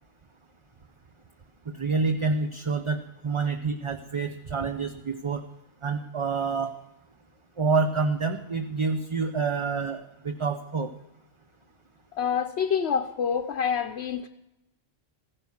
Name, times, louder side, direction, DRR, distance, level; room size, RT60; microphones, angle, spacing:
voice 1, 1.8-5.4 5.8-6.7 7.6-10.9, right 4 dB, 35° right, 0.7 m, -27 dB
voice 2, 12.1-14.3, left 7 dB, 85° left, 1.0 m, -27 dB
15.0 x 11.0 x 7.0 m
omnidirectional pair, 1.1 m